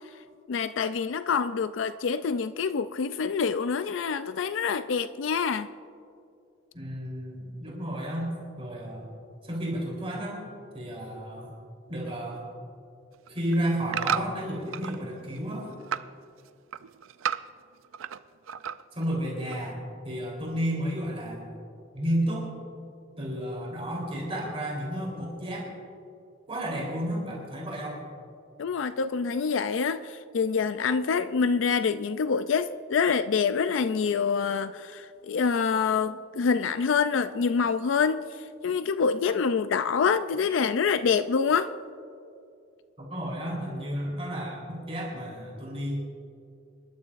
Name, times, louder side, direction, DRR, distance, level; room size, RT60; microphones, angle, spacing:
voice 1, 0.5-5.7 28.6-38.2 38.6-41.7, left 5 dB, 70° left, 0.4 m, -26 dB
voice 2, 6.7-8.3 8.6-9.1 9.4-10.4 10.7-11.5 11.9-12.5 13.3-15.7 18.9-21.4 21.9-22.5 23.2-25.7 26.5-28.0 43.0-45.9, equal, 30° right, 3.5 m, -32 dB
sound 1, 13.1-15.0 15.4-16.1 16.5-18.2 18.5-19.0 19.5-19.6, right 8 dB, 90° right, 0.4 m, -33 dB
26.5 x 13.0 x 2.5 m
head